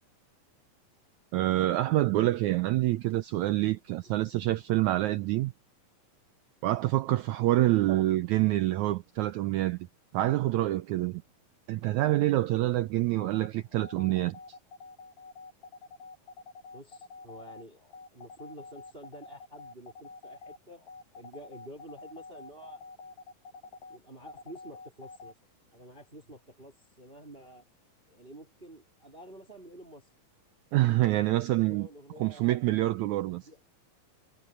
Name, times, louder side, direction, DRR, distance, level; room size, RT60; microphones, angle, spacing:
voice 1, 1.3-5.5 6.6-9.8 10.1-11.2 11.7-14.4 30.7-31.9 32.2-33.5, right 16 dB, 80° right, 1.7 m, -26 dB
sound 1, 13.2-25.3, left 3 dB, 75° left, 9.0 m, -48 dB
voice 2, 16.7-17.8 18.1-20.8 21.1-22.9 23.9-25.3 25.7-27.6 28.1-30.1 31.7-32.5 33.4-33.6, right 1 dB, 15° right, 4.0 m, -49 dB
omnidirectional pair, 4.0 m